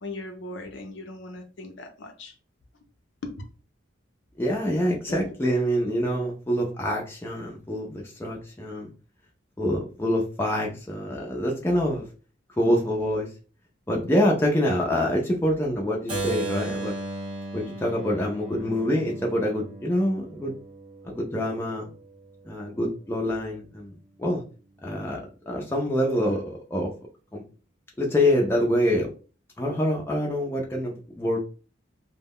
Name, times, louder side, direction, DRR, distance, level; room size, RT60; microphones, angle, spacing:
voice 1, 0.0-2.3 3.2-3.3 5.1-5.2, left 2 dB, 65° left, 4 dB, 0.5 m, -38 dB
voice 2, 4.4-8.9 9.6-12.1 12.6-13.3 13.9-16.9 17.5-20.5 21.0-21.9 22.4-23.9 24.2-24.4 24.8-25.2 25.5-26.9 27.3-27.4 28.0-29.1 29.6-31.5, equal, 10° left, -1 dB, 0.4 m, -26 dB
Keyboard (musical), 16.1-21.9, right 2 dB, 25° right, 0.9 m, -36 dB
2.2 x 2.0 x 3.5 m, 0.36 s
head